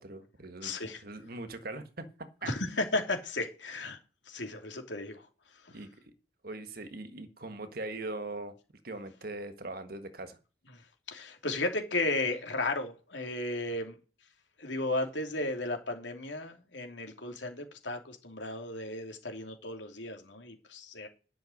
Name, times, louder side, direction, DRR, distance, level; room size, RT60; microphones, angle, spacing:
voice 1, 0.0-0.8 1.0-2.1 2.4-2.5 5.7-6.1 6.4-8.5 8.8-10.4, right 2 dB, 55° right, 9 dB, 1.6 m, -41 dB
voice 2, 0.6-1.0 2.4-4.0 4.3-5.3 5.5-5.8 10.7-10.8 11.1-14.0 14.6-21.1, left 2 dB, 85° left, 4 dB, 2.9 m, -34 dB
11.5 x 6.1 x 6.5 m, 0.34 s
head